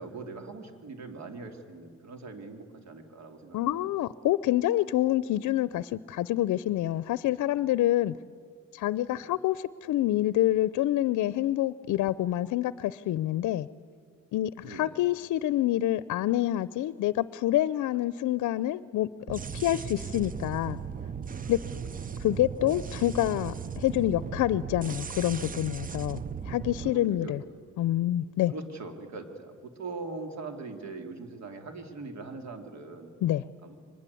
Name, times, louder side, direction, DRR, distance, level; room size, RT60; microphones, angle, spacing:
voice 1, 0.0-3.8 9.1-9.3 14.6-15.0 21.7-22.2 26.9-27.3 28.5-33.1 33.6-33.8, right 3 dB, 65° right, 5 dB, 3.1 m, -41 dB
voice 2, 3.5-8.1 8.7-13.7 14.3-20.8 21.5-21.6 22.2-27.4 27.8-28.5 33.2-33.5, left 14 dB, 75° left, 17 dB, 0.6 m, -27 dB
sound 1, 19.3-26.9, right 6 dB, 30° right, 0.6 m, -37 dB
24.5 x 21.0 x 8.4 m, 2.1 s
cardioid pair, 90°, 30 cm